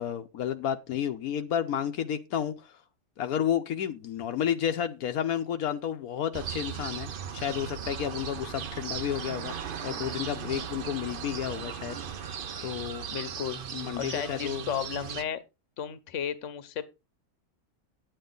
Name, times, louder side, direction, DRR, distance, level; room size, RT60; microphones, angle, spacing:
voice 1, 0.0-2.8 3.2-12.3 12.6-13.1 13.7-14.6, left 9 dB, 80° left, 1.2 m, -31 dB
sound 1, 6.3-15.2, right 7 dB, 50° right, 0.7 m, -37 dB
voice 2, 13.1-13.6 14.0-15.4 15.8-16.8, left 9 dB, 60° left, 1.2 m, -33 dB
9.4 x 9.1 x 3.9 m
omnidirectional pair, 1.5 m